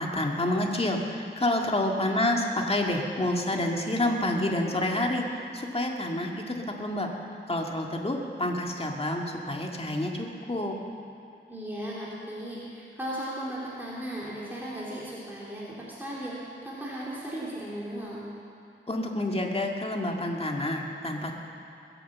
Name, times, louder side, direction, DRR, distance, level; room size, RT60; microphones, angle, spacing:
voice 1, 0.0-5.2 5.5-7.1 7.5-10.8 18.9-21.3, left 1 dB, 30° left, 0 dB, 1.9 m, -28 dB
voice 2, 1.7-2.4 11.5-18.2, right 1 dB, 10° right, -7 dB, 2.9 m, -37 dB
22.0 x 7.9 x 7.3 m, 2.8 s
wide cardioid pair, 80°, 21 cm